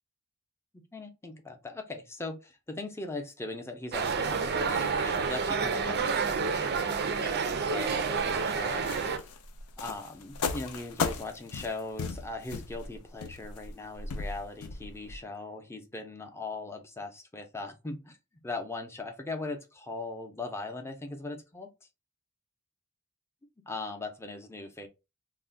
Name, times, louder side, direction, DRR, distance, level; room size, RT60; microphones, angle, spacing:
voice 1, 0.9-9.3 9.8-18.2 18.4-21.7 23.7-24.9, left 2 dB, 10° left, 0.5 m, -39 dB
sound 1, 3.9-9.2, right 5 dB, 50° right, 0.4 m, -29 dB
sound 2, 8.2-15.2, left 5 dB, 80° left, 0.5 m, -36 dB
2.4 x 2.1 x 3.7 m
head